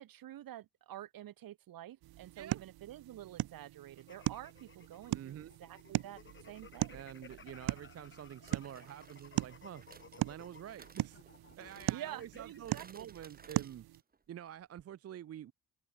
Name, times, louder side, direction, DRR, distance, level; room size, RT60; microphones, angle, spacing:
voice 1, 0.0-7.0 11.9-13.1, right 12 dB, 65° right, 1.6 m, -49 dB
sound 1, 2.0-14.0, right 16 dB, 85° right, 0.8 m, -40 dB
sound 2, 4.0-12.6, left 6 dB, 30° left, 7.0 m, -58 dB
voice 2, 5.1-5.6 6.9-9.8 10.2-11.2 11.6-13.9 14.3-15.5, right 10 dB, 40° right, 0.6 m, -48 dB
sound 3, 7.3-7.4 8.5-14.2 14.5-14.6 14.8-14.9, right 5 dB, 25° right, 2.1 m, -60 dB
cardioid pair, 160°, 37 cm